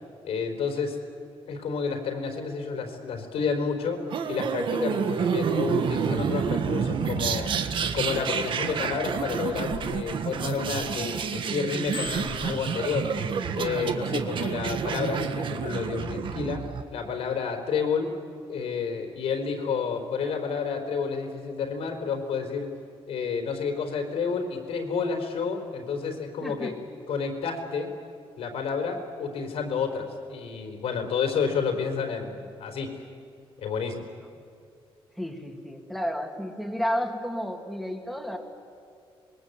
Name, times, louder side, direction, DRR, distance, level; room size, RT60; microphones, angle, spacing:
voice 1, 0.2-1.0 1.5-4.0 4.3-7.5 7.9-13.1 13.5-16.6 16.9-18.1 18.5-22.7 23.1-26.8 27.1-27.9 28.4-32.9 33.6-34.0, left 5 dB, 80° left, 4 dB, 4.3 m, -30 dB
sound 1, 4.1-16.8, right 6 dB, 55° right, 1.5 m, -29 dB
Bicycle bell, 9.4-11.2 11.6-13.3 13.9-14.1, left 5 dB, 60° left, 2.8 m, -41 dB
voice 2, 26.4-26.8 35.2-38.4, equal, ahead, 3 dB, 2.5 m, -31 dB
26.0 x 22.0 x 8.3 m, 2.4 s
cardioid pair, 155°, 10 cm